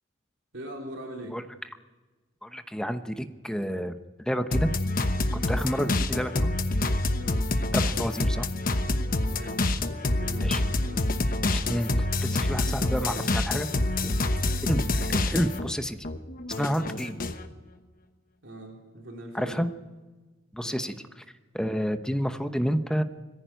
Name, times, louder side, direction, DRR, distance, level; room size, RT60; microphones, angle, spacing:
voice 1, 0.5-1.4 7.2-7.4 9.2-11.1 18.4-19.6 20.6-21.1, right 1 dB, 65° right, 1 dB, 3.6 m, -42 dB
voice 2, 2.4-3.9 4.3-4.7 5.3-6.5 7.7-8.5 10.4-10.6 11.5-13.7 14.0-14.1 14.6-16.0 16.6-17.2 19.3-19.7 20.5-20.9 21.5-23.0, equal, 5° left, 8 dB, 0.9 m, -29 dB
sound 1, 4.5-15.7 16.0-17.4, left 2 dB, 45° left, 1.1 m, -27 dB
21.0 x 15.0 x 9.3 m, 1.3 s
head